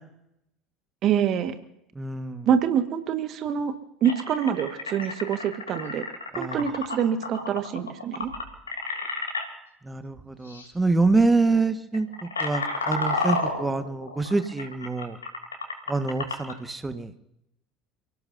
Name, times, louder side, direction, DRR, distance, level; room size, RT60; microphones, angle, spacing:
voice 1, 1.0-1.5 2.4-3.7 4.0-6.0 6.4-8.3, right 8 dB, 50° right, 9 dB, 1.6 m, -25 dB
voice 2, 1.9-2.5 6.3-6.6 9.8-12.1 12.4-15.2 15.9-17.1, right 3 dB, 15° right, 9 dB, 1.5 m, -25 dB
sound 1, 3.5-3.6 4.0-9.5 10.5-10.7 11.0-11.2 11.8-16.6, left 3 dB, 85° left, 3.1 m, -31 dB
30.0 x 17.0 x 2.7 m, 0.80 s
figure-of-eight pair, 65°, 0 cm